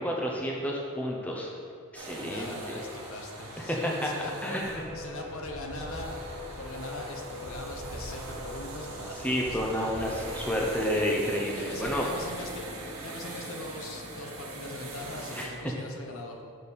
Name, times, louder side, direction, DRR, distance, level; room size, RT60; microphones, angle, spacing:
voice 1, 0.0-1.5 1.9-2.5 3.6-4.1 4.4-4.7 9.2-12.0 15.3-15.5, equal, 5° left, -2 dB, 0.6 m, -30 dB
sound 1, 1.9-15.5, right 2 dB, 80° right, 1.2 m, -42 dB
voice 2, 2.1-4.6 4.9-6.2 6.6-9.6 11.6-16.4, left 2 dB, 70° left, 2 dB, 0.8 m, -41 dB
sound 2, 4.6-15.0, left 1 dB, 15° right, 1.2 m, -43 dB
6.7 x 5.3 x 4.2 m, 2.2 s
head